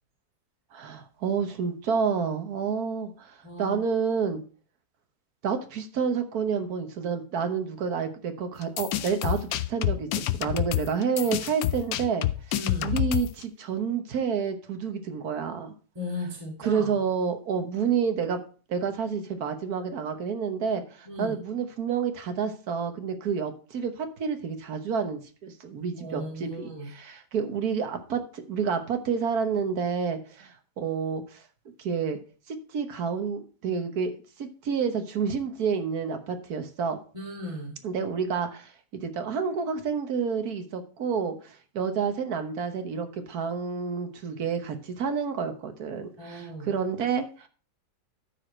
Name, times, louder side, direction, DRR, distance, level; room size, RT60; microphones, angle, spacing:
voice 1, 0.7-4.4 5.4-12.3 12.8-15.7 16.6-18.4 18.7-31.4 31.8-32.2 32.5-37.0 37.8-47.5, right 6 dB, 55° right, 7 dB, 1.5 m, -29 dB
voice 2, 3.4-3.8 12.5-13.1 15.9-16.9 21.0-21.4 26.0-26.9 37.1-37.8 46.2-46.7, left 1 dB, 15° right, -3 dB, 2.7 m, -36 dB
sound 1, 8.6-13.4, left 14 dB, 80° left, 0.8 m, -28 dB
13.0 x 5.0 x 4.4 m, 0.37 s
omnidirectional pair, 2.1 m